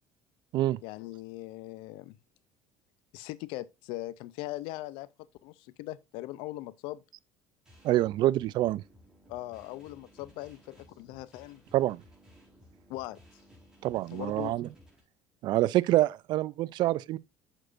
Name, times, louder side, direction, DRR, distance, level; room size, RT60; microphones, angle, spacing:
voice 1, 0.8-2.2 3.1-5.1 5.4-7.0 9.3-11.6 12.9-13.2 14.1-14.6, left 17 dB, 80° left, 0.6 m, -40 dB
sound 1, 7.7-15.0, equal, 10° right, 4.2 m, -58 dB
voice 2, 7.8-8.8 11.7-12.0 13.8-14.7 15.4-17.2, right 15 dB, 60° right, 0.4 m, -26 dB
9.0 x 6.6 x 2.5 m
supercardioid pair, 105°, 8 cm